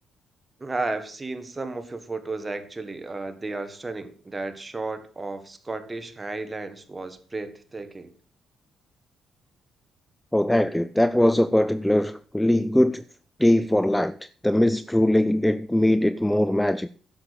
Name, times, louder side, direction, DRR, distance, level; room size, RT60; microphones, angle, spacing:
voice 1, 0.6-8.1, right 3 dB, 20° right, 1.6 m, -33 dB
voice 2, 10.3-13.0 13.4-16.9, left 1 dB, 5° left, 0.4 m, -21 dB
10.5 x 7.1 x 6.6 m
cardioid pair, 90°, 0 cm